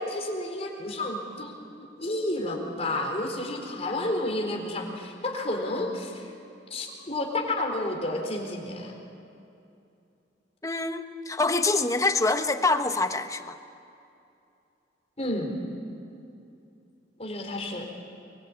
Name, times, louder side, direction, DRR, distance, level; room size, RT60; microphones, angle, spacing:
voice 1, 0.0-6.3 6.7-8.9 15.2-15.5 17.2-17.9, left 1 dB, 35° left, 2 dB, 4.3 m, -31 dB
voice 2, 10.6-13.6, left 3 dB, 20° left, 8 dB, 1.1 m, -25 dB
24.5 x 22.5 x 8.8 m, 2.6 s
head